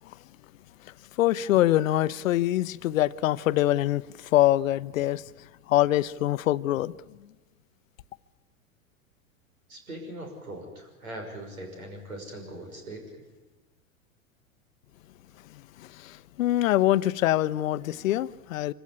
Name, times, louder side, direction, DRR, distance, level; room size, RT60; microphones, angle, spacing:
voice 1, 1.2-4.0 4.3-5.2 5.7-6.9 16.0-18.7, left 14 dB, 70° left, 0.7 m, -24 dB
voice 2, 9.7-13.0, right 1 dB, 85° right, 6.0 m, -40 dB
24.5 x 16.0 x 9.7 m
hypercardioid pair, 95°, 41 cm